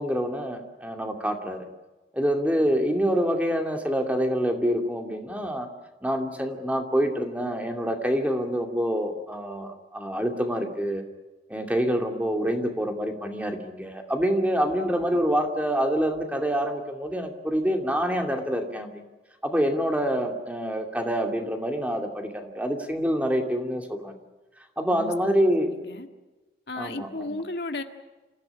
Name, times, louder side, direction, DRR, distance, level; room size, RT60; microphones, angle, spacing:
voice 1, 0.0-1.7 2.1-5.7 6.0-11.0 11.5-19.0 19.4-24.1 24.8-25.7 26.8-27.4, equal, 10° right, 4 dB, 2.5 m, -26 dB
voice 2, 24.9-25.3 25.6-26.1 26.7-27.8, left 2 dB, 75° left, 6 dB, 1.9 m, -34 dB
28.0 x 15.5 x 9.9 m, 1.1 s
head